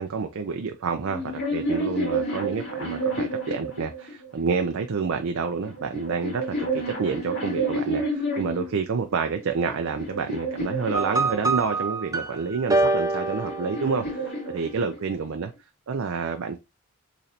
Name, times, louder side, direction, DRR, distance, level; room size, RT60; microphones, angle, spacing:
voice 1, 0.0-15.5 15.9-16.6, right 5 dB, 65° right, 0.4 m, -29 dB
sound 1, 1.0-4.4 5.3-8.7 9.4-11.8 12.9-15.3, right 1 dB, 50° left, 2.0 m, -30 dB
sound 2, 10.9-14.3, right 2 dB, 15° right, 0.6 m, -26 dB
4.1 x 3.1 x 2.6 m
head